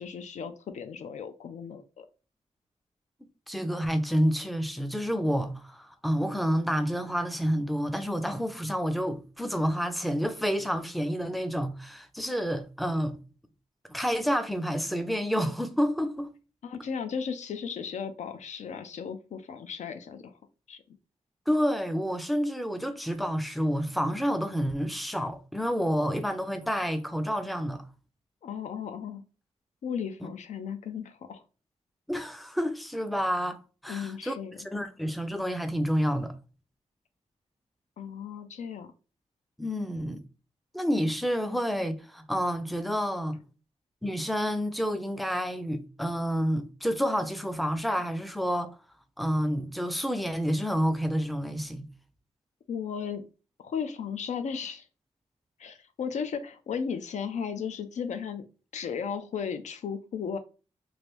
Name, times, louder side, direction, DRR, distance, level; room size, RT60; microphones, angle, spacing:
voice 1, 0.0-2.1 16.6-20.4 20.7-20.8 28.4-29.2 29.8-31.4 33.9-34.7 38.0-38.9 52.7-53.3 53.6-54.9 55.6-58.4 58.7-60.4, left 6 dB, 75° left, 0.4 m, -35 dB
voice 2, 3.5-13.2 13.9-16.3 21.5-27.8 30.2-30.3 32.1-34.4 34.6-36.3 39.6-40.2 40.7-43.4 44.0-48.7 49.2-51.8, equal, ahead, 0.3 m, -29 dB
3.1 x 2.5 x 3.1 m
wide cardioid pair, 130°, 12 cm